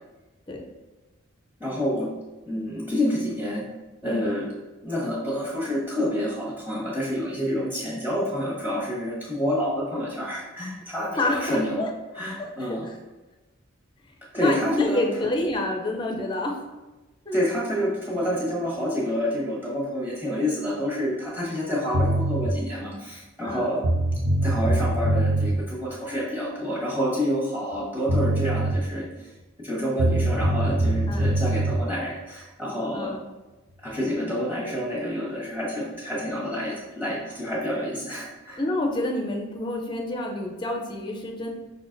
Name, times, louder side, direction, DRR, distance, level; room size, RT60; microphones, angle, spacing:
voice 1, 1.6-2.1 2.4-3.6 4.0-4.5 4.8-11.8 12.1-12.9 14.3-15.1 17.3-23.8 24.4-29.3 29.6-33.1 33.8-38.6, equal, 10° right, -7 dB, 1.2 m, -28 dB
voice 2, 11.1-11.9 12.4-12.9 14.3-16.6 17.3-17.4 23.4-23.7 31.1-31.3 32.9-33.2 38.6-41.5, left 1 dB, 20° left, 1 dB, 0.5 m, -28 dB
sound 1, 21.9-22.5 23.5-23.6 23.8-25.5 27.7-27.8 28.1-28.7 30.0-31.7, right 1 dB, 85° right, 0.7 m, -23 dB
5.1 x 4.0 x 2.5 m, 1.1 s
head